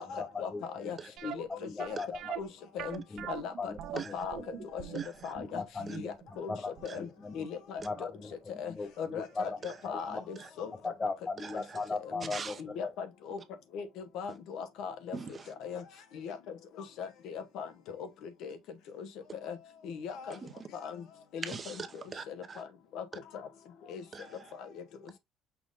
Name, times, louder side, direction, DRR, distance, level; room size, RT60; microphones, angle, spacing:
voice 1, 0.1-0.5 0.8-1.0 1.2-1.5 1.8-2.0 2.4-2.5 2.7-3.0 3.3-3.7 4.1-4.4 4.7-4.8 5.2-5.6 5.9-6.5 6.8-7.1 7.3-7.8 8.6-10.7 12.2-12.3 12.8-13.4 13.7-15.2 15.6-15.8 16.2-16.4 17.0-18.1 18.4-18.6 19.0-19.1 19.4-19.5 19.8-20.3 20.8-21.0 21.3-21.7 22.3-22.6 22.9-23.0 23.9-24.0, left 6 dB, 70° left, 1.0 m, -39 dB
sound 1, 1.2-8.0 8.3-8.4 9.0-9.1 9.4-9.5, right 11 dB, 65° right, 0.5 m, -42 dB
voice 2, 1.6-2.1 3.1-3.3 3.6-3.8 4.9-5.0 5.4-6.2 6.5-7.5 7.8-8.3 8.6-9.6 9.9-10.2 10.8-12.5 12.8-12.9, left 3 dB, 20° left, 0.5 m, -37 dB
voice 3, 4.9-5.3 5.9-6.0 6.8-7.0 9.6-9.8 10.4-10.5 11.4-11.9 12.3-12.6 15.1-15.5 20.3-20.5 21.4-22.6 24.1-24.5, right 5 dB, 30° right, 0.8 m, -43 dB
6.0 x 2.5 x 3.5 m
cardioid pair, 110°, 0 cm